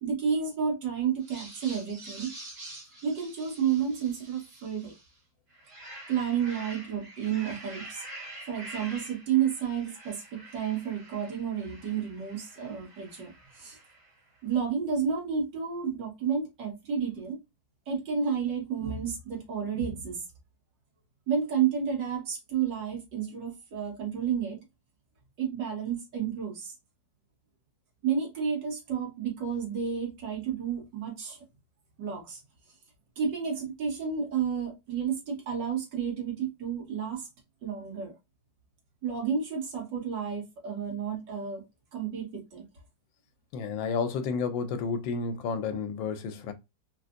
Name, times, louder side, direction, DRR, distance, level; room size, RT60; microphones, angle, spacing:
voice 1, 0.0-2.3 3.0-4.9 6.1-8.0 8.5-13.3 13.6-13.8 14.4-17.4 17.9-20.2 21.3-24.6 25.4-26.7 28.0-31.4 32.0-32.4 33.2-37.3 37.6-38.2 39.0-41.6 41.9-42.6, right 7 dB, 65° right, 2.0 m, -31 dB
sound 1, 1.2-5.1 5.5-14.2, right 1 dB, 45° right, 1.7 m, -47 dB
voice 2, 43.5-46.5, left 5 dB, 85° left, 1.3 m, -31 dB
3.9 x 2.5 x 2.5 m
omnidirectional pair, 2.1 m